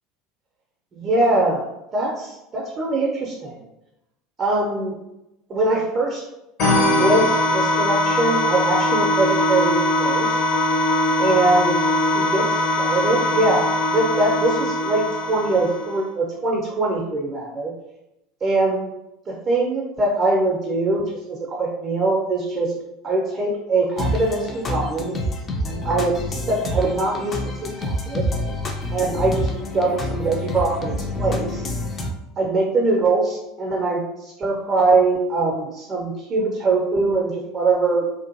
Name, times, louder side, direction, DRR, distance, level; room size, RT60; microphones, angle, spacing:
voice 1, 0.9-1.7 1.9-3.5 4.4-4.9 5.5-6.2 6.9-10.3 11.2-11.8 12.1-17.7 18.4-18.9 19.3-22.7 23.0-25.2 25.6-28.2 28.9-31.6 32.4-38.2, right 2 dB, 30° right, -2 dB, 0.5 m, -22 dB
sound 1, 6.6-16.0, left 1 dB, 50° left, 0.8 m, -21 dB
sound 2, 24.0-32.1, left 1 dB, 30° left, 0.4 m, -27 dB
2.6 x 2.4 x 2.6 m, 0.91 s
figure-of-eight pair, 75°, 0 cm